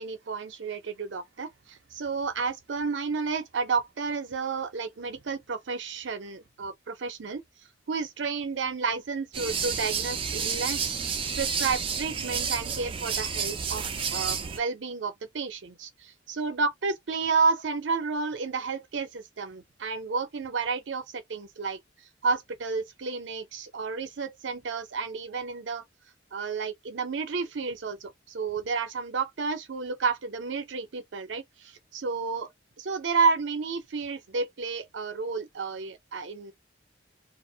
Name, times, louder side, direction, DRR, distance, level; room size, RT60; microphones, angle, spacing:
voice 1, 0.0-7.4 7.9-11.0 11.4-13.8 14.1-21.8 22.2-25.8 26.3-32.5 32.8-36.5, right 4 dB, 75° right, 0.6 m, -31 dB
sound 1, 9.3-14.6, right 6 dB, 30° right, 0.4 m, -30 dB
2.4 x 2.1 x 2.6 m
head